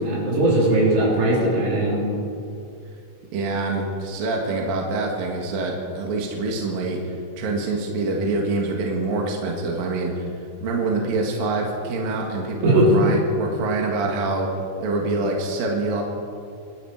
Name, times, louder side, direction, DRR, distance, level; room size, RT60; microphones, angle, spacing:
voice 1, 0.0-2.1 12.6-12.9, right 1 dB, 80° right, -4 dB, 6.1 m, -19 dB
voice 2, 3.3-10.3 10.6-14.5 14.8-16.0, right 3 dB, 60° right, 0 dB, 3.2 m, -25 dB
25.5 x 10.5 x 4.8 m, 2.4 s
omnidirectional pair, 5.2 m